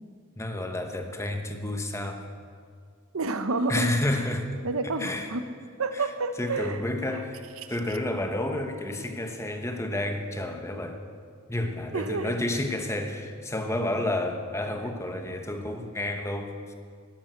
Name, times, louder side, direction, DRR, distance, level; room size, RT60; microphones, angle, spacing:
voice 1, 0.4-2.2 3.7-4.6 5.0-5.3 5.9-6.1 6.4-11.0 11.5-16.7, left 1 dB, 15° left, 5 dB, 1.1 m, -30 dB
voice 2, 3.1-3.9 4.6-5.4 5.8-6.8 7.1-7.2 8.9-9.0 11.9-12.3, right 3 dB, 90° right, 10 dB, 0.9 m, -29 dB
12.0 x 11.5 x 7.9 m, 2.2 s
head